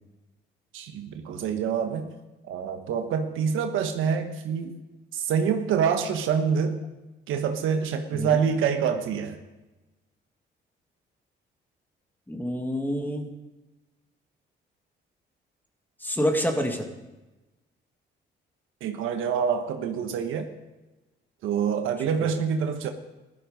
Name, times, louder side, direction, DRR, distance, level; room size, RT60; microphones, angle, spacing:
voice 1, 0.7-2.1 2.5-4.7 5.1-6.8 7.3-9.4 18.8-20.5 21.4-22.9, right 7 dB, 90° right, 6 dB, 1.2 m, -26 dB
voice 2, 12.3-13.3 16.0-16.9 22.0-22.3, equal, 10° left, 4 dB, 2.0 m, -28 dB
15.0 x 12.5 x 5.1 m, 1.1 s
cardioid pair, 90°, 20 cm